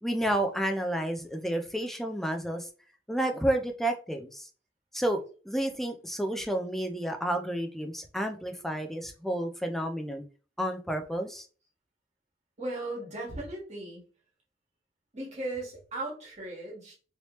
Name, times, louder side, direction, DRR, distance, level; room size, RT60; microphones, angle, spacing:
voice 1, 0.0-2.7 3.1-4.5 4.9-10.2 10.6-11.5, right 1 dB, ahead, 4 dB, 0.4 m, -30 dB
voice 2, 12.6-14.0 15.1-16.9, right 2 dB, 40° right, -4 dB, 1.5 m, -37 dB
3.1 x 2.9 x 3.0 m, 0.38 s
head